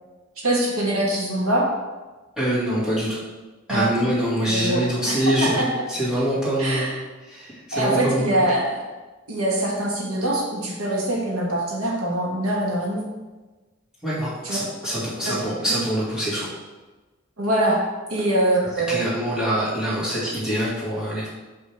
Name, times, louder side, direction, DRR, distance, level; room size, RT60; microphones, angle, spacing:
voice 1, 0.4-1.7 3.7-3.9 4.5-5.7 6.6-7.0 7.7-8.8 9.3-13.1 14.4-14.6 15.3-15.8 17.4-17.8 18.1-19.0, right 1 dB, 85° right, -2 dB, 1.5 m, -23 dB
voice 2, 2.4-3.1 3.7-6.9 7.3-8.2 14.0-16.5 18.9-21.3, equal, 5° right, -10 dB, 2.2 m, -24 dB
6.5 x 5.4 x 3.5 m, 1.2 s
head